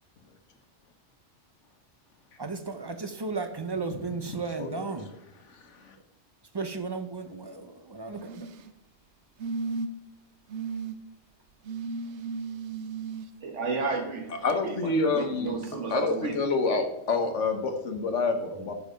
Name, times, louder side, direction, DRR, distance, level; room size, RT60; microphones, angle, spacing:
voice 1, 2.4-5.1 6.5-8.5 18.5-18.7, right 4 dB, 35° right, 0.4 m, -34 dB
sound 1, 8.1-8.7 9.4-10.1 10.5-10.9 11.7-13.3 14.5-14.6, right 4 dB, 75° right, 0.9 m, -35 dB
voice 2, 13.4-16.4, right 4 dB, 90° right, 1.6 m, -33 dB
voice 3, 14.4-15.5 15.9-18.7, left 3 dB, 85° left, 1.4 m, -27 dB
6.4 x 5.4 x 5.1 m
omnidirectional pair, 1.2 m